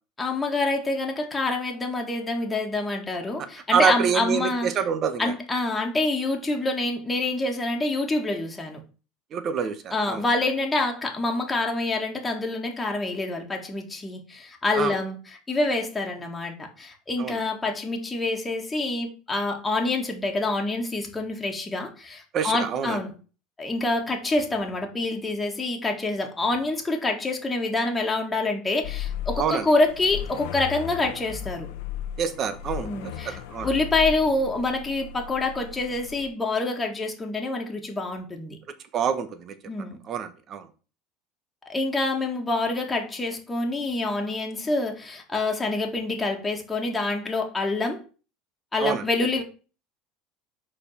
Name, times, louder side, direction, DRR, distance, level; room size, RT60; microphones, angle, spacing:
voice 1, 0.2-4.7 5.2-8.8 9.9-15.2 15.5-23.1 23.6-31.7 32.8-38.6 39.6-40.0 41.7-48.0 48.7-49.4, left 2 dB, 15° left, 1 dB, 1.9 m, -26 dB
voice 2, 3.7-5.3 9.3-10.2 14.8-15.0 17.2-17.4 22.3-23.0 29.4-29.6 32.2-32.9 33.2-33.7 38.9-39.5 40.1-40.6 48.8-49.0, right 7 dB, 45° right, 10 dB, 1.2 m, -26 dB
sound 1, 28.8-36.3, left 10 dB, 75° left, 0.9 m, -36 dB
5.2 x 4.4 x 5.6 m, 0.36 s
supercardioid pair, 100°, 0 cm